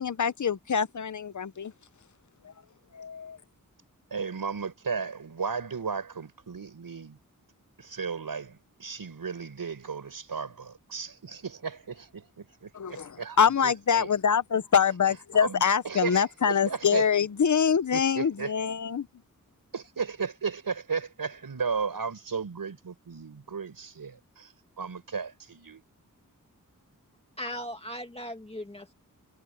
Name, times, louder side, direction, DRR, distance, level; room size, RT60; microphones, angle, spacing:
voice 1, 0.0-1.7 2.4-2.5 2.9-3.4 12.7-19.1, left 7 dB, 60° left, 0.9 m, -25 dB
voice 2, 4.1-7.2 7.8-14.1 15.3-17.1 17.9-18.5 19.7-25.8, right 5 dB, 90° right, 6.1 m, -35 dB
voice 3, 27.4-28.9, left 1 dB, 15° left, 2.2 m, -38 dB
wide cardioid pair, 100°, 34 cm